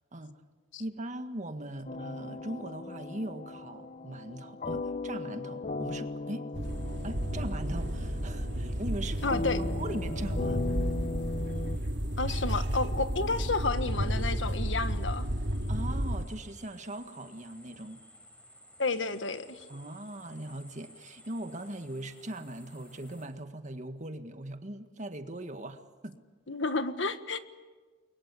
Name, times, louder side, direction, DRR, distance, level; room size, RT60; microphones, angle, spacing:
voice 1, 0.8-6.5 7.0-10.7 15.7-18.0 19.7-26.2, right 1 dB, 40° right, 8 dB, 1.8 m, -40 dB
sound 1, 1.8-11.8, left 3 dB, 40° left, 0.8 m, -37 dB
sound 2, 6.5-16.3, equal, 70° right, 2.3 m, -32 dB
sound 3, 6.6-23.3, left 1 dB, 5° left, 6.6 m, -56 dB
voice 2, 9.2-9.6 12.2-15.2 18.8-19.6 26.5-27.4, left 3 dB, 80° left, 10 dB, 1.6 m, -31 dB
30.0 x 23.0 x 8.4 m, 1.4 s
head